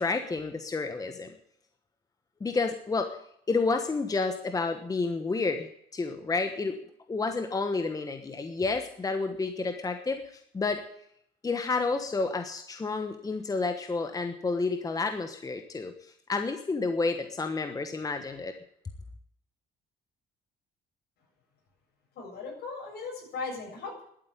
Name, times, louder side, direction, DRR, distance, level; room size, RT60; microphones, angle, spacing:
voice 1, 0.0-1.3 2.4-3.2 3.5-6.8 7.1-10.2 10.5-10.8 11.4-15.9 16.3-18.5, left 3 dB, 20° left, 7 dB, 1.2 m, -30 dB
voice 2, 22.2-24.0, left 4 dB, 70° left, 0 dB, 7.4 m, -38 dB
12.0 x 8.8 x 9.9 m, 0.71 s
cardioid pair, 110°, 17 cm